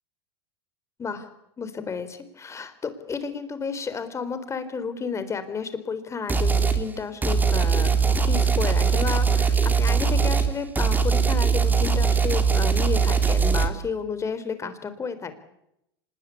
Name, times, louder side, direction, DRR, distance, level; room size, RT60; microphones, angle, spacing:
voice 1, 1.6-8.0 8.2-15.3, left 5 dB, 20° left, 12 dB, 4.0 m, -32 dB
sound 1, 6.3-6.8 7.2-13.7, right 5 dB, 15° right, 3.0 m, -21 dB
25.5 x 21.0 x 8.4 m, 0.80 s
supercardioid pair, 115°, 13 cm